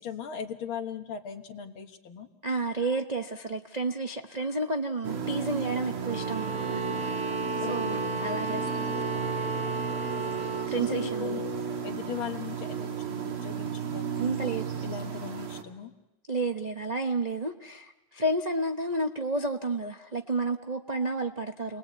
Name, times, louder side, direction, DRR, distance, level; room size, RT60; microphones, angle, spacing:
voice 1, 0.0-2.3 7.6-8.2 10.8-11.4 11.8-14.3 14.8-15.9, left 7 dB, 70° left, 6 dB, 2.3 m, -39 dB
voice 2, 2.4-9.0 10.7-11.4 12.1-12.2 14.2-14.7 16.3-21.8, right 2 dB, 65° right, 3 dB, 0.4 m, -31 dB
sound 1, 5.0-15.6, right 7 dB, 85° right, 2.8 m, -33 dB
sound 2, 6.0-10.8, right 1 dB, 35° right, 0.9 m, -34 dB
30.0 x 20.5 x 8.1 m, 1.0 s
omnidirectional pair, 2.3 m